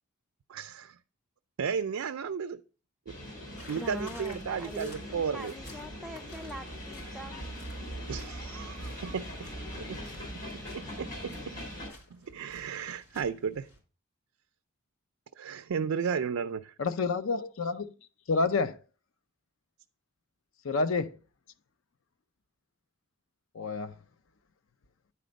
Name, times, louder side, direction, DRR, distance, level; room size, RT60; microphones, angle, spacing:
voice 1, 0.5-1.0 1.6-2.6 3.1-3.2 3.7-5.5 8.1-9.5 9.9-10.0 10.7-11.3 12.1-13.7 15.4-16.7, right 6 dB, 80° right, 0.4 m, -34 dB
sound 1, 3.1-11.9, equal, 40° left, 3.8 m, -41 dB
sound 2, 3.6-13.8, left 2 dB, 85° left, 3.5 m, -54 dB
voice 2, 3.7-7.5, right 1 dB, ahead, 0.3 m, -43 dB
voice 3, 16.8-17.9 18.3-18.8 20.6-21.2 23.5-23.9, left 4 dB, 65° left, 0.5 m, -28 dB
9.9 x 4.2 x 5.1 m
head